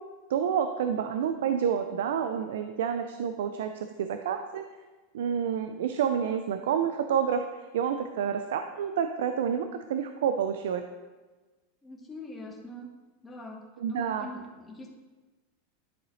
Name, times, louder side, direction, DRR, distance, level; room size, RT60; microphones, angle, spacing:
voice 1, 0.3-4.6 5.1-7.5 7.7-10.8 13.8-14.3, right 8 dB, 80° right, 8 dB, 0.4 m, -29 dB
voice 2, 11.8-12.9 13.2-13.6 13.9-14.9, left 1 dB, 15° left, -1 dB, 1.2 m, -43 dB
10.5 x 3.9 x 3.2 m, 1.3 s
supercardioid pair, 125°, 0 cm